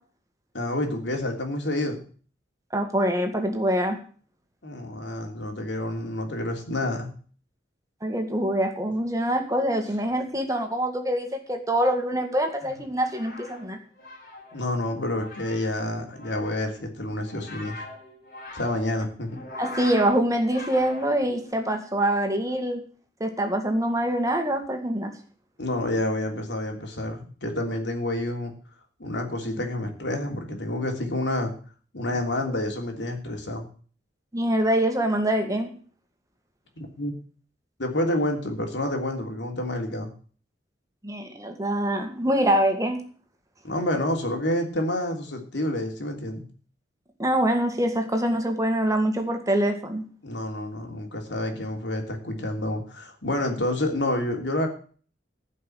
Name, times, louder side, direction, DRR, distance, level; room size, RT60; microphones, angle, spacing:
voice 1, 0.5-2.0 4.6-7.1 14.5-17.8 18.5-19.4 25.6-28.5 29.0-31.5 31.9-33.7 36.8-37.1 37.8-40.1 43.6-46.4 50.2-54.7, left 1 dB, 80° left, 3 dB, 3.2 m, -28 dB
voice 2, 2.7-4.0 8.0-13.8 19.6-22.8 23.2-25.1 34.3-35.7 41.0-43.0 47.2-50.0, right 1 dB, 20° right, 5 dB, 1.9 m, -24 dB
sound 1, 12.8-21.5, left 2 dB, 55° left, 5.2 m, -42 dB
15.5 x 5.6 x 9.2 m, 0.43 s
head